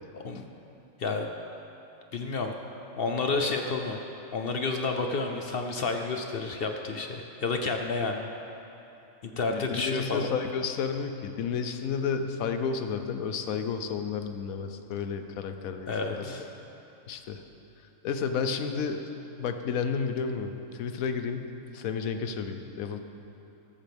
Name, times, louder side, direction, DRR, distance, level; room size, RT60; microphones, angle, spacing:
voice 1, 1.0-1.3 2.1-2.5 3.0-4.0 4.3-8.3 9.2-10.3 15.9-16.5, left 3 dB, 55° left, 4 dB, 0.7 m, -30 dB
voice 2, 9.5-16.3 17.1-17.4 18.0-19.0 19.4-21.5 21.7-23.0, left 6 dB, 80° left, 7 dB, 1.2 m, -31 dB
14.0 x 12.5 x 3.5 m, 3.0 s
omnidirectional pair, 1.4 m